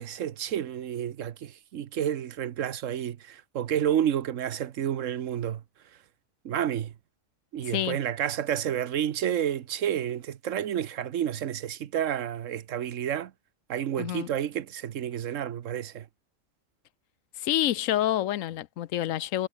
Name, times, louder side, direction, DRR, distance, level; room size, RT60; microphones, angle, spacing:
voice 1, 0.0-5.6 6.4-6.9 7.5-13.3 13.7-16.1, right 10 dB, 75° right, 1.2 m, -30 dB
voice 2, 14.0-14.3 17.4-19.5, left 12 dB, 90° left, 1.1 m, -28 dB
omnidirectional pair, 1.3 m